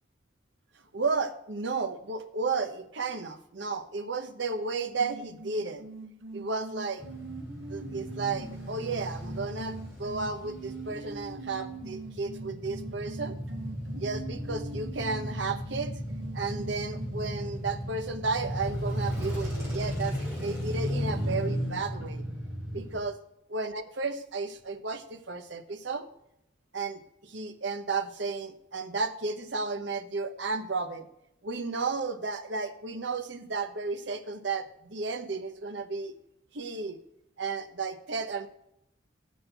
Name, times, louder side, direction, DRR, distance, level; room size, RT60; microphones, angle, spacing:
voice 1, 0.9-5.8 6.3-7.0 7.7-13.4 13.9-15.9 16.3-20.2 20.4-22.2 22.7-23.2 23.5-26.0 26.7-31.1 31.4-36.1 36.5-37.0 37.4-38.5, right 4 dB, 65° right, 7 dB, 1.0 m, -33 dB
sound 1, 5.0-17.1, right 4 dB, 85° right, 1.3 m, -43 dB
Male speech man speaking / Motorcycle / Idling, 7.0-23.0, equal, 10° right, 4.7 m, -35 dB
7.4 x 6.3 x 7.9 m, 0.80 s
head